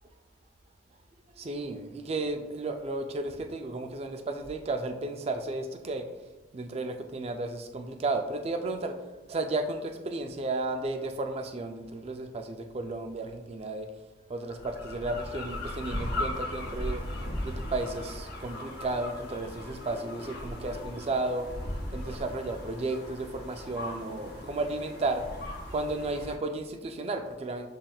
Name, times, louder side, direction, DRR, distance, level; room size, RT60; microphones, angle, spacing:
voice 1, 1.4-6.1 6.5-9.0 9.3-13.9 14.3-17.0 17.4-21.5 21.9-25.2 25.7-27.7, right 2 dB, 30° right, 6 dB, 0.3 m, -33 dB
sound 1, 14.5-26.4, left 1 dB, 50° left, 0.9 m, -38 dB
7.2 x 3.2 x 2.3 m, 1.1 s
head